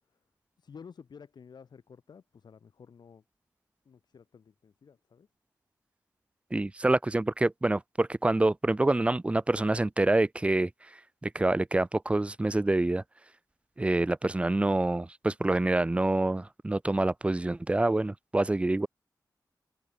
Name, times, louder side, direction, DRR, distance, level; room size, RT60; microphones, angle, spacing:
voice 1, 0.6-3.2 3.8-5.3, left 6 dB, 80° left, 3.1 m, -52 dB
voice 2, 6.5-10.7 11.2-13.0 13.8-18.9, right 2 dB, 15° right, 0.6 m, -26 dB
wide cardioid pair, 135°, 7 cm